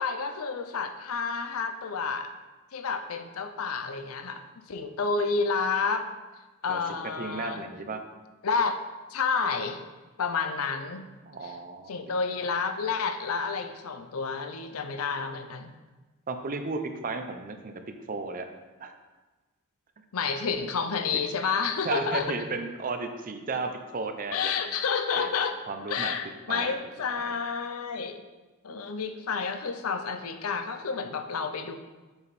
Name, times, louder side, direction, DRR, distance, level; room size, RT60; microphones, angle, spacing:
voice 1, 0.0-2.3 2.7-6.1 6.6-7.6 8.4-8.8 9.1-9.8 10.2-11.1 11.4-11.6 11.9-15.8 20.1-22.3 24.3-25.6 25.9-28.2 28.6-31.8, left 5 dB, 75° left, 8 dB, 0.6 m, -30 dB
voice 2, 6.7-8.0 11.3-12.0 16.3-17.7 18.1-18.5 18.8-18.9 21.8-24.5 25.2-25.3 25.7-26.2 26.5-26.7 27.2-27.3, right 3 dB, 40° right, 7 dB, 0.6 m, -34 dB
7.1 x 5.2 x 4.1 m, 1.2 s
head